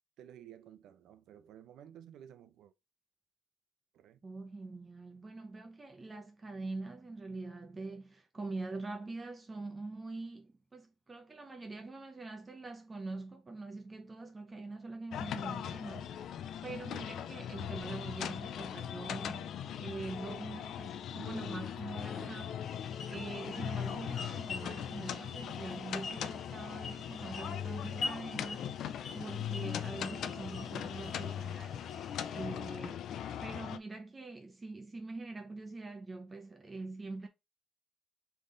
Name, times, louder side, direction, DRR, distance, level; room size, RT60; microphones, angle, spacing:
voice 1, 0.2-2.7 3.9-4.2, right 10 dB, 85° right, 0.7 m, -54 dB
voice 2, 4.2-16.2 16.6-22.6 23.1-28.7 29.1-31.8 32.3-33.1 33.4-37.3, right 3 dB, 20° right, 0.7 m, -44 dB
sound 1, 15.1-33.8, left 9 dB, 65° left, 0.4 m, -40 dB
sound 2, 19.9-24.5, left 1 dB, 15° left, 1.2 m, -58 dB
sound 3, 22.6-32.5, left 3 dB, 40° left, 1.1 m, -46 dB
3.9 x 3.5 x 3.8 m
cardioid pair, 165°, 0 cm